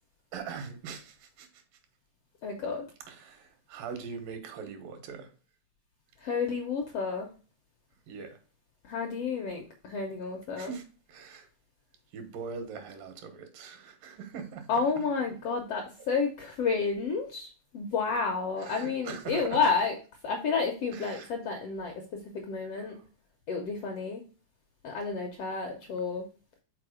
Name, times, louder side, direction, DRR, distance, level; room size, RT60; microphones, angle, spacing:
voice 1, 0.3-1.6 3.1-5.3 8.1-8.4 10.6-10.8 11.1-11.5 12.1-15.0 18.6-19.6 20.9-21.3 22.8-23.0, right 6 dB, 90° right, 2.9 m, -42 dB
voice 2, 2.4-2.8 6.2-7.3 8.8-10.7 14.7-20.0 20.2-23.0 23.5-24.2 24.8-26.3, left 5 dB, 75° left, 1.4 m, -31 dB
5.8 x 4.2 x 4.9 m
omnidirectional pair, 3.8 m